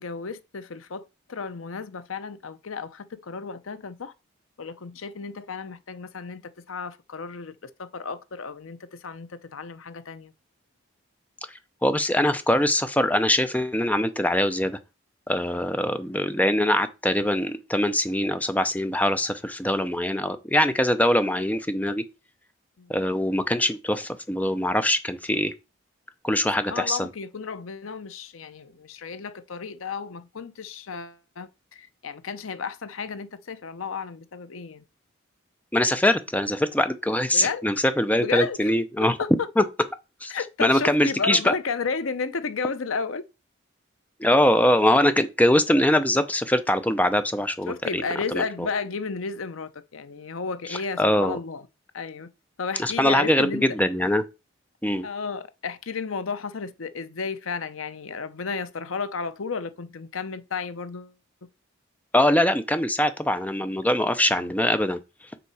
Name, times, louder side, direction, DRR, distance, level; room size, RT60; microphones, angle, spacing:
voice 1, 0.0-4.1 4.6-10.3 15.5-15.6 22.8-23.0 26.6-34.8 37.3-37.6 38.2-38.7 39.2-39.5 40.3-43.2 47.7-51.6 51.9-52.3 52.6-53.8 55.0-61.1, left 5 dB, 80° left, 0.7 m, -33 dB
voice 2, 11.8-14.8 15.3-22.0 22.9-25.5 26.2-27.1 35.7-39.2 39.6-39.7 40.2-40.3 40.6-41.5 44.2-48.0 48.3-48.7 51.0-51.4 52.8-54.2 54.8-55.1 62.1-65.0, left 1 dB, 5° left, 0.5 m, -22 dB
7.0 x 4.1 x 4.8 m
head